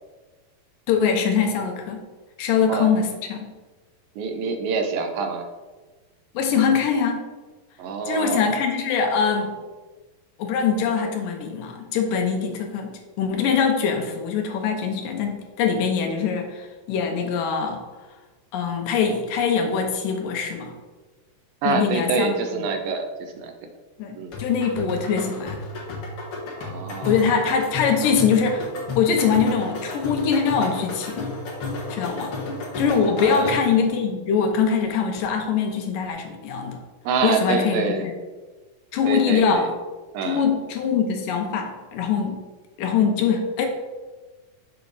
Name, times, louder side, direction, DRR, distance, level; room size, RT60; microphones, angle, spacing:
voice 1, 0.9-2.0 2.4-3.5 6.3-7.2 8.1-9.6 10.4-17.8 18.5-20.7 21.7-22.4 24.0-25.6 27.1-28.7 28.9-31.3 31.9-32.3 32.8-36.8 37.2-38.1 38.9-39.7 40.2-42.4 42.8-43.7, left 6 dB, 75° left, 3 dB, 2.4 m, -23 dB
voice 2, 4.2-5.5 7.8-8.6 21.6-23.5 24.1-24.4 26.6-27.4 33.2-33.5 37.0-38.1 39.0-39.7 40.1-40.4, right 5 dB, 85° right, 5 dB, 2.6 m, -26 dB
sound 1, 24.3-33.8, left 2 dB, 50° left, 2.0 m, -32 dB
7.2 x 5.7 x 4.0 m, 1.3 s
omnidirectional pair, 4.0 m